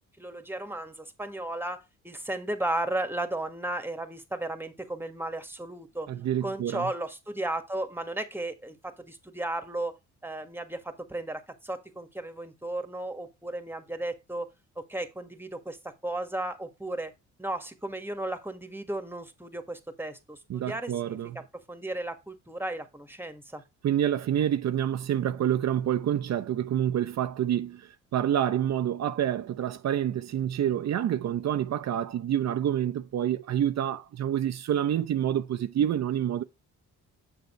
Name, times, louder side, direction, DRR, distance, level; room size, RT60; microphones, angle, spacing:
voice 1, 0.2-6.1 6.4-10.0 10.2-14.5 14.7-17.1 17.4-21.2 21.7-23.6, right 1 dB, 5° right, 1.8 m, -34 dB
voice 2, 6.1-6.9 20.5-21.4 23.8-36.4, right 10 dB, 60° right, 0.8 m, -27 dB
7.7 x 6.9 x 3.3 m
cardioid pair, 90°, 30 cm